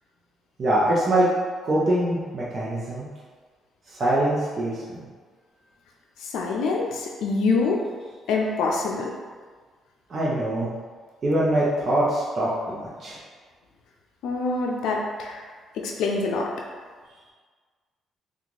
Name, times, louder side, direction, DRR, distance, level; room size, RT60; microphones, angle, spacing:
voice 1, 0.6-1.3 1.6-3.1 3.9-5.1 10.1-10.7 11.2-13.2, right 1 dB, 45° right, -7 dB, 0.7 m, -23 dB
voice 2, 6.2-7.8 8.3-9.1 14.2-15.4 15.7-16.5, left 3 dB, 85° left, -1 dB, 0.4 m, -25 dB
2.9 x 2.4 x 3.8 m, 1.5 s
cardioid pair, 90°, 0 cm